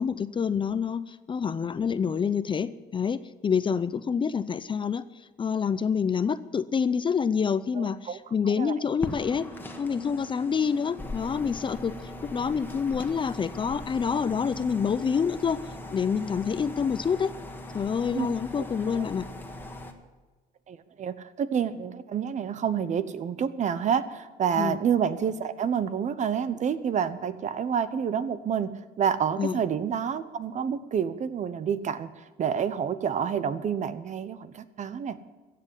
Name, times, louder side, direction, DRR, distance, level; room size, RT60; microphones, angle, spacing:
voice 1, 0.0-5.0 5.4-9.5 9.8-11.9 12.3-15.6 15.9-17.3 17.7-19.3 24.6-24.8 29.4-29.6, left 6 dB, 30° left, 15 dB, 0.6 m, -27 dB
voice 2, 7.8-8.2 8.6-8.7 18.1-18.3 18.6-19.0 20.7-35.2, right 7 dB, 45° right, 14 dB, 0.9 m, -28 dB
sound 1, 9.0-19.9, left 1 dB, 10° left, 1.6 m, -40 dB
15.0 x 7.8 x 9.7 m, 1.3 s
cardioid pair, 110°, 17 cm